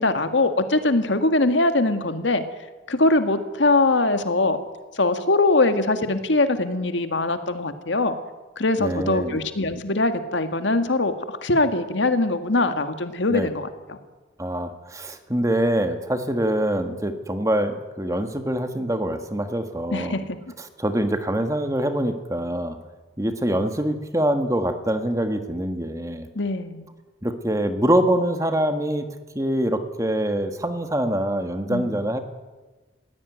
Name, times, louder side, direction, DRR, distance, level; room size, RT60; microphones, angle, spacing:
voice 1, 0.0-2.4 2.9-4.6 5.0-8.1 8.6-14.0 19.9-20.4 26.4-26.9 31.7-32.0, left 2 dB, 85° left, 8 dB, 1.8 m, -22 dB
voice 2, 8.8-9.4 13.3-13.5 14.4-20.2 20.6-22.8 23.2-26.3 27.2-29.1 29.3-32.2, right 1 dB, 15° right, 7 dB, 1.5 m, -24 dB
20.5 x 16.0 x 9.3 m, 1.3 s
head